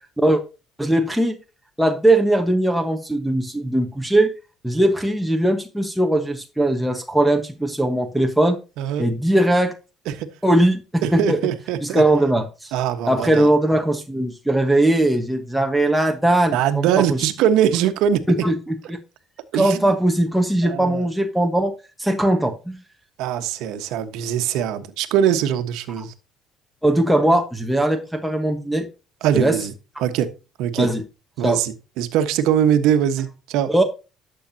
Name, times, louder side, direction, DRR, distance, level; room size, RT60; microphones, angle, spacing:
voice 1, 0.8-1.4 1.8-4.3 4.6-8.6 9.0-9.7 10.4-11.4 11.8-12.7 13.1-17.2 18.3-19.0 19.5-21.7 22.0-22.8 26.8-28.9 29.3-29.6 30.8-31.0 31.4-31.6 33.7-33.8, right 1 dB, ahead, 1.2 m, -19 dB
voice 2, 11.0-12.0 12.7-13.5 16.5-18.2 19.5-19.8 20.6-21.0 23.2-26.1 29.2-29.7 30.0-30.3 30.6-30.9 31.4-33.7, right 9 dB, 80° right, 1.3 m, -21 dB
12.0 x 7.5 x 2.8 m
cardioid pair, 115°, 0 cm